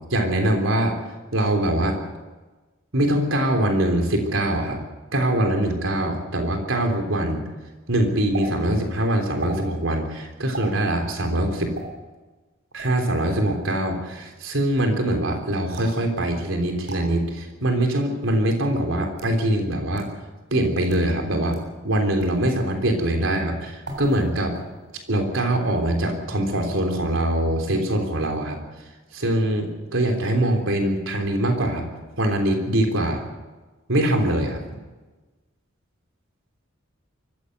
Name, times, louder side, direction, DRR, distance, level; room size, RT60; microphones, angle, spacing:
voice 1, 0.1-1.0 1.3-2.0 2.9-4.8 5.1-7.4 7.9-11.7 12.7-20.1 20.5-21.6 21.8-24.5 25.1-28.6 29.1-31.9 32.2-33.2 33.9-34.6, right 1 dB, 80° right, 3 dB, 3.5 m, -23 dB
sound 1, 8.3-8.5 9.4-9.6 10.5-10.7 11.7-11.9 12.8-13.0 15.7-16.0 16.9-17.0 18.0-18.1 18.9-19.4 20.0-20.1 20.8-21.1 21.5-21.6 22.2-22.4 23.8-24.3 24.5-25.0, right 2 dB, 60° right, 7.5 m, -36 dB
24.0 x 15.5 x 8.0 m, 1.2 s
head